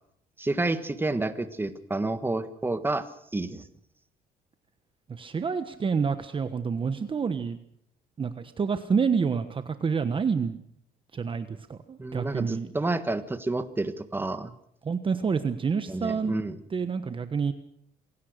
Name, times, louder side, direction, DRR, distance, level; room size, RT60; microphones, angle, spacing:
voice 1, 0.4-3.1 3.3-3.6 12.0-14.5 15.9-16.6, right 2 dB, 10° right, 10 dB, 1.6 m, -29 dB
voice 2, 5.1-7.6 8.2-10.6 11.1-12.7 14.8-16.3 16.7-17.5, right 5 dB, 30° right, 10 dB, 1.2 m, -28 dB
26.5 x 17.5 x 6.6 m, 0.72 s
cardioid pair, 110°, 17 cm